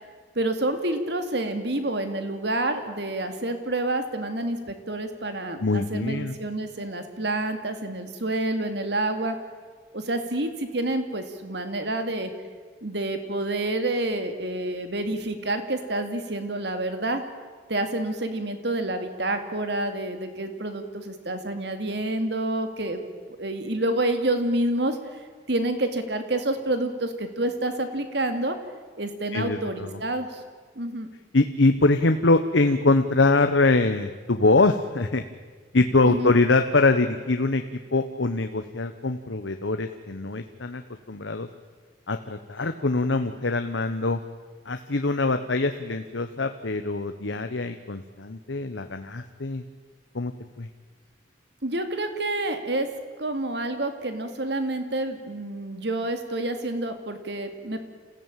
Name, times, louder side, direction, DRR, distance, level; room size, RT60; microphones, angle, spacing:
voice 1, 0.3-9.4 9.9-12.3 12.8-17.2 17.7-23.0 23.4-25.2 25.5-28.6 29.0-30.4 30.8-31.1 36.0-36.3 51.6-52.9 53.2-57.8, right 1 dB, 60° right, 8 dB, 2.6 m, -28 dB
voice 2, 5.6-6.3 29.3-30.0 31.3-35.2 35.7-37.6 37.9-40.8 41.1-41.5 42.1-44.2 44.6-49.6 50.1-50.3 50.6-50.7, left 3 dB, 80° left, 7 dB, 1.1 m, -23 dB
27.5 x 16.0 x 9.1 m, 1.5 s
head